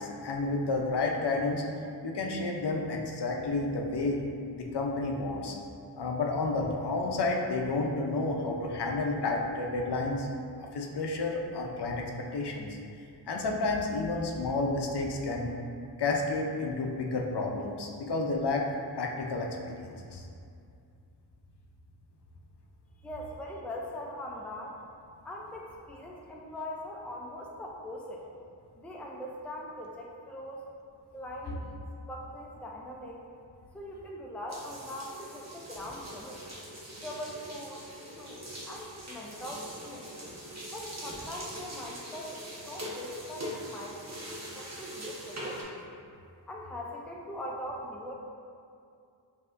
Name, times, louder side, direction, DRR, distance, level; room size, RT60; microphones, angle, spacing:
voice 1, 0.0-1.6 2.0-4.2 4.5-5.6 6.0-10.3 10.6-12.8 13.3-15.5 16.0-18.7 19.0-20.3, left 3 dB, 60° left, 0 dB, 0.6 m, -31 dB
voice 2, 23.0-24.8 25.2-28.3 28.8-30.6 31.1-33.2 33.7-36.5 37.0-40.1 40.7-45.8 46.5-48.1, left 1 dB, 5° left, -2 dB, 0.4 m, -41 dB
sound 1, 34.5-45.6, equal, 35° right, 0.9 m, -42 dB
5.4 x 2.7 x 2.5 m, 2.4 s
cardioid pair, 50°, 45 cm